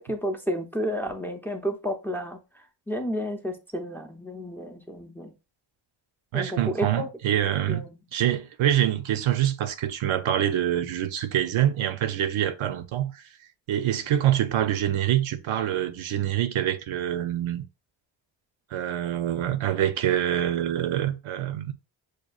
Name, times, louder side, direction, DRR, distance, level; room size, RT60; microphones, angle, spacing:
voice 1, 0.0-2.4 2.9-5.3 6.3-7.1 7.7-8.0, equal, 5° left, 0.5 m, -31 dB
voice 2, 6.3-7.9 8.1-13.2 13.7-17.6 18.7-21.7, right 11 dB, 75° right, 0.6 m, -25 dB
6.3 x 2.3 x 2.3 m
cardioid pair, 100°, 49 cm